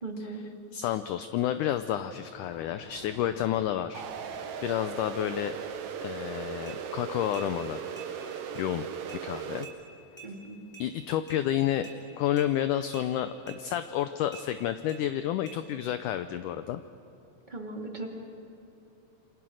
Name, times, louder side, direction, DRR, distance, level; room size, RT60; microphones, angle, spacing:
voice 1, 0.0-0.4 10.2-10.6 17.5-18.1, right 2 dB, 15° right, 0 dB, 2.3 m, -38 dB
voice 2, 0.7-5.6 6.0-7.8 8.6-8.9 9.2-9.7 10.8-11.9 12.2-16.8, left 11 dB, 75° left, 10 dB, 1.9 m, -30 dB
sound 1, 2.3-7.1, left 1 dB, 60° left, 7.3 m, -52 dB
sound 2, 3.9-9.6, right 8 dB, 65° right, 1.5 m, -38 dB
sound 3, 6.7-6.8 7.3-7.5 8.0-8.1 8.6-8.7 9.1-9.2 9.6-9.8 10.2-10.3 10.7-10.9 11.3-11.4 11.8-12.0 12.4-12.5 12.9-13.1 13.5-13.6 14.3-14.5 14.9-15.0 15.5-15.6, right 6 dB, 5° left, 5.8 m, -48 dB
28.5 x 26.0 x 6.4 m, 2.9 s
omnidirectional pair, 4.2 m